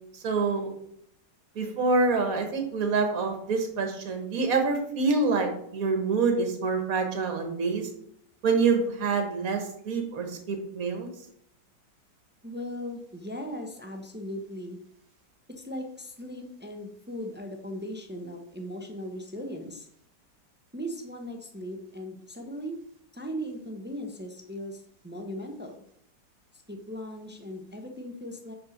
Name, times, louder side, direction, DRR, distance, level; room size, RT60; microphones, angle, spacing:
voice 1, 0.2-0.7 1.6-7.9 8.4-11.1, right 4 dB, 50° right, 5 dB, 1.8 m, -26 dB
voice 2, 12.4-14.8 15.6-19.9 20.7-22.8 23.1-24.8 25.0-25.8 26.7-28.5, equal, 15° right, 4 dB, 0.4 m, -38 dB
5.9 x 5.4 x 6.4 m, 0.72 s
omnidirectional pair, 2.0 m